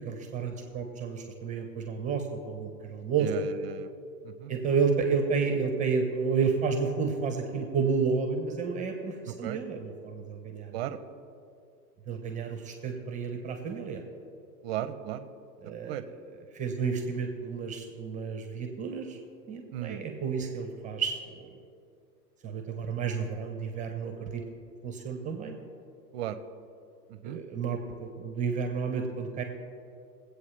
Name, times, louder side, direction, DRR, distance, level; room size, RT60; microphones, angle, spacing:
voice 1, 0.0-3.3 4.5-10.7 12.1-14.0 15.6-16.0 16.5-19.2 19.5-21.4 22.4-24.4 24.8-25.5 27.2-29.4, right 5 dB, 15° right, 5 dB, 1.0 m, -31 dB
voice 2, 3.2-3.9 4.2-4.5 9.3-9.6 10.7-11.0 14.6-15.3 15.8-16.0 19.7-20.0 26.1-26.4 27.1-27.4, right 11 dB, 40° right, 12 dB, 0.8 m, -36 dB
22.0 x 8.3 x 3.4 m, 2.4 s
hypercardioid pair, 130°, 49 cm